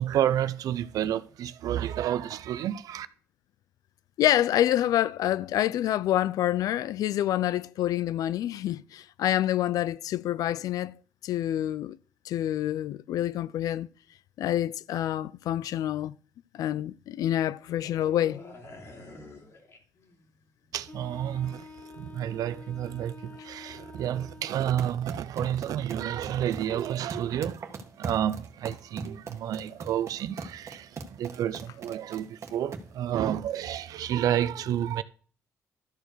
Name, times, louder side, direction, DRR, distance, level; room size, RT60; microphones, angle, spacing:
voice 1, 0.0-3.1 20.7-35.0, right 11 dB, 80° right, 0.7 m, -30 dB
voice 2, 4.2-10.9 11.2-12.0 12.2-13.9 14.4-16.1 16.5-18.4, left 12 dB, 80° left, 0.4 m, -27 dB
sound 1, 17.7-20.4 20.6-20.9, left 3 dB, 55° left, 3.0 m, -47 dB
Wind instrument woodwind instrument, 20.9-25.0, left 4 dB, 30° left, 1.0 m, -48 dB
sound 2, 24.6-33.0, right 4 dB, 50° right, 1.5 m, -41 dB
13.0 x 4.6 x 6.5 m
cardioid pair, 100°, 6 cm